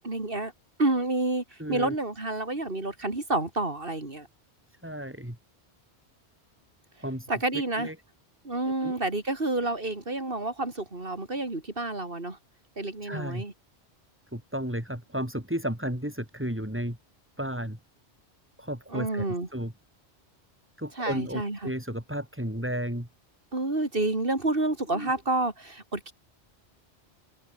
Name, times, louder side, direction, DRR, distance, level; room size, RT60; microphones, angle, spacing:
voice 1, 0.0-0.5 0.8-1.4 1.7-4.3 7.3-7.9 8.4-12.4 12.8-13.5 18.9-19.5 21.0-21.7 23.5-26.1, right 2 dB, 55° right, 3.7 m, -29 dB
voice 2, 1.6-1.9 4.8-5.4 7.0-7.3 7.5-7.9 8.6-9.0 13.0-13.4 14.3-17.0 17.4-17.8 18.6-19.3 19.5-19.7 20.8-23.1 24.9-25.1, equal, 10° right, 4.5 m, -33 dB
omnidirectional pair, 1.1 m